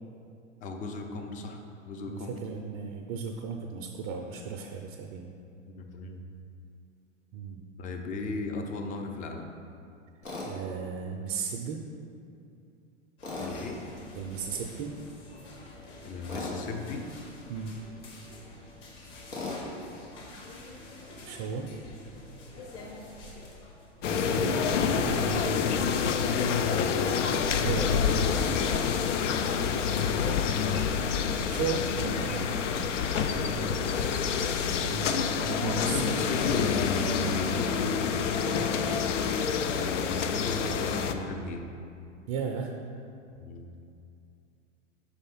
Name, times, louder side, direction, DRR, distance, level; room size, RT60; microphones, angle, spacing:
voice 1, 0.6-1.6 1.9-2.3 5.7-6.2 7.8-9.5 13.4-13.8 16.0-17.0 26.7-27.1 30.6-30.8 35.6-41.6 43.4-43.7, left 3 dB, 20° left, 4 dB, 0.5 m, -35 dB
voice 2, 2.1-5.3 7.3-7.6 10.4-11.8 14.1-14.9 17.5-17.7 21.2-21.6 24.1-26.5 27.6-28.1 28.5-29.0 31.5-32.4 33.3-33.8 34.8-36.0 42.3-42.7, right 5 dB, 40° right, 2 dB, 0.5 m, -35 dB
Tools, 10.2-10.5 13.2-13.6 16.3-16.6 19.3-19.6, left 3 dB, 90° left, 1.5 m, -36 dB
sound 1, 13.2-24.3, left 2 dB, 45° left, 1.3 m, -47 dB
sound 2, 24.0-41.1, left 6 dB, 70° left, 0.5 m, -27 dB
5.3 x 4.3 x 5.4 m, 2.5 s
figure-of-eight pair, 100°, 38 cm